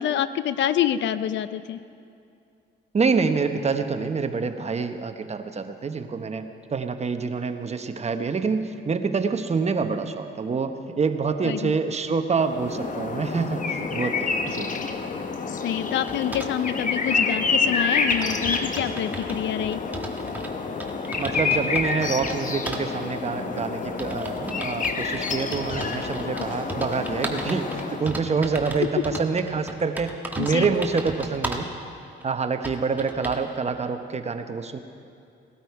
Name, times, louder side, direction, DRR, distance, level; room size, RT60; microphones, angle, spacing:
voice 1, 0.0-1.8 11.4-11.7 15.5-19.8 26.3-26.4 28.8-29.2 30.4-30.7, left 10 dB, 65° left, 14 dB, 0.5 m, -27 dB
voice 2, 2.9-14.7 21.2-31.7 32.2-34.8, right 5 dB, 35° right, 8 dB, 0.9 m, -26 dB
sound 1, 12.4-28.3, left 4 dB, 40° left, 1.0 m, -28 dB
sound 2, 16.1-16.5 17.4-17.5 17.8-17.9 18.1-20.5 20.8-22.4 22.7-22.8 23.6-31.7 32.2-32.3 32.6-33.5, right 1 dB, 10° right, 1.5 m, -36 dB
18.0 x 12.5 x 4.7 m, 2.4 s
cardioid pair, 90°, 20 cm